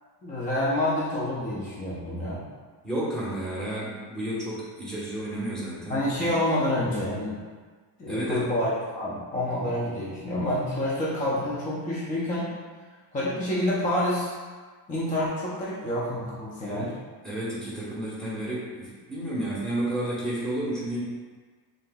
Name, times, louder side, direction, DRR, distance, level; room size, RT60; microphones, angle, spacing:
voice 1, 0.2-2.4 5.9-7.4 8.0-8.7 9.0-12.5 13.1-14.3 14.9-16.9, left 1 dB, 20° left, -7 dB, 0.6 m, -28 dB
voice 2, 2.8-6.3 8.1-8.5 16.6-16.9 17.2-21.0, right 1 dB, ahead, -9 dB, 1.0 m, -31 dB
5.6 x 3.8 x 2.3 m, 1.5 s
cardioid pair, 175°, 44 cm